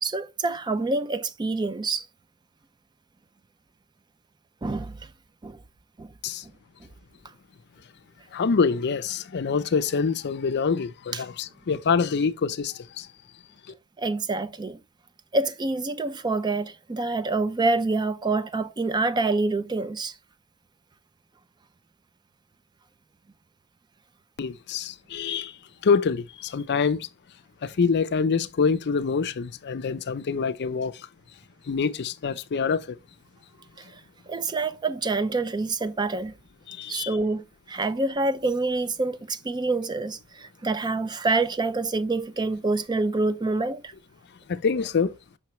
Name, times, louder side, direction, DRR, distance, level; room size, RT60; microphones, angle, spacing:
voice 1, 0.0-2.1 4.6-5.1 5.4-5.6 6.0-6.1 11.1-11.2 14.0-14.8 15.3-20.1 33.8-34.0 34.3-36.3 36.9-43.9, right 3 dB, 20° right, 0.4 m, -27 dB
voice 2, 8.3-13.1 24.4-25.5 25.8-27.1 27.6-31.1 31.7-33.0 36.7-37.1 44.5-45.1, left 5 dB, 50° left, 0.5 m, -25 dB
5.8 x 5.8 x 3.0 m
head